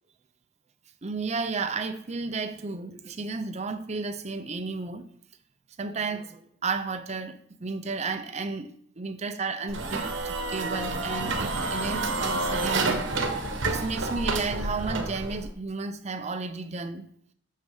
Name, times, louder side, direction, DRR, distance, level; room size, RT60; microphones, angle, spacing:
voice 1, 1.0-5.1 5.8-13.1 13.7-17.1, right 4 dB, 35° right, 0.6 m, -33 dB
sound 1, 9.7-15.5, right 3 dB, 65° right, 1.1 m, -29 dB
6.6 x 6.1 x 5.6 m
head